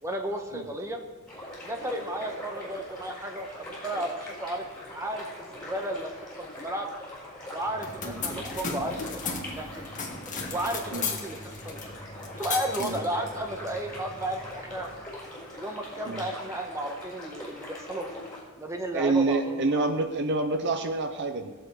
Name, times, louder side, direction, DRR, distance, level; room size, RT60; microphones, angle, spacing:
voice 1, 0.0-1.0 1.6-4.6 4.9-6.1 6.4-6.9 7.5-9.9 10.5-11.8 12.4-14.9 15.5-18.1 18.6-19.9, right 1 dB, 15° right, 3 dB, 1.3 m, -33 dB
sound 1, 1.3-18.4, left 1 dB, 5° left, 5.0 m, -42 dB
sound 2, 7.6-15.0, left 4 dB, 35° left, 1.8 m, -37 dB
voice 2, 18.9-21.5, right 3 dB, 55° right, 7 dB, 0.7 m, -27 dB
18.0 x 7.8 x 4.8 m, 1.3 s
head